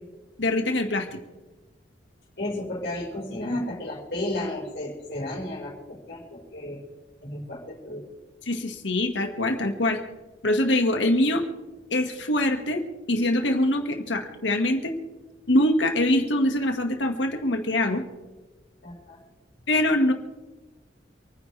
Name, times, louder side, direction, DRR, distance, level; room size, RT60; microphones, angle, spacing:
voice 1, 0.4-1.2 8.5-10.0 10.4-11.4 11.9-12.8 13.1-14.9 15.5-18.0 19.7-20.1, left 1 dB, 85° left, 4 dB, 2.0 m, -23 dB
voice 2, 2.4-6.8 7.2-8.0 18.8-19.2, left 1 dB, 65° left, -6 dB, 5.2 m, -33 dB
28.5 x 10.0 x 3.5 m, 1.2 s
head